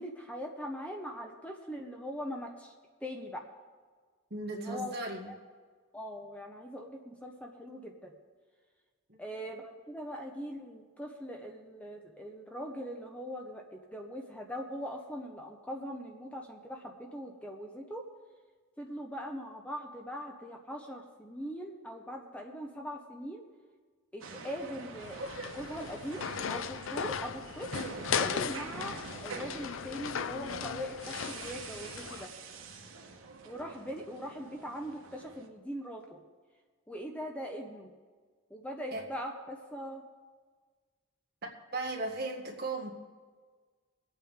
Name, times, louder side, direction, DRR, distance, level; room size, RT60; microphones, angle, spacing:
voice 1, 0.0-2.7 3.0-3.5 4.5-5.0 5.2-5.3 5.9-8.1 9.2-18.0 18.8-23.4 24.1-25.2 25.5-32.3 33.4-36.2 36.9-37.9 38.5-40.0, equal, 5° left, 2 dB, 0.9 m, -41 dB
voice 2, 4.3-5.3 9.1-9.2 38.9-39.0 41.4-42.9, right 2 dB, 50° right, 0 dB, 1.9 m, -37 dB
sound 1, 24.2-35.5, right 3 dB, 85° right, 1.4 m, -46 dB
sound 2, 25.0-32.3, left 7 dB, 75° left, 0.5 m, -37 dB
22.5 x 8.7 x 3.7 m, 1.5 s
head